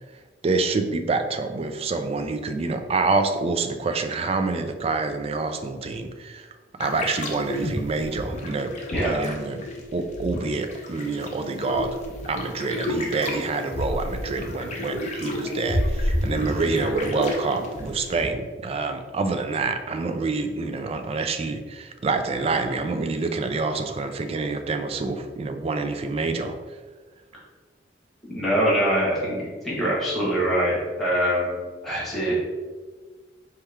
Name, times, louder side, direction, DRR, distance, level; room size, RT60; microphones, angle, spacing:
voice 1, 0.4-6.5 6.8-8.7 9.0-9.6 9.9-11.9 12.3-26.6, right 3 dB, 30° right, 7 dB, 0.3 m, -27 dB
sound 1, 6.8-18.3, left 1 dB, 40° left, 0.7 m, -31 dB
voice 2, 28.2-32.3, equal, ahead, -7 dB, 1.5 m, -24 dB
4.5 x 3.1 x 3.5 m, 1.4 s
head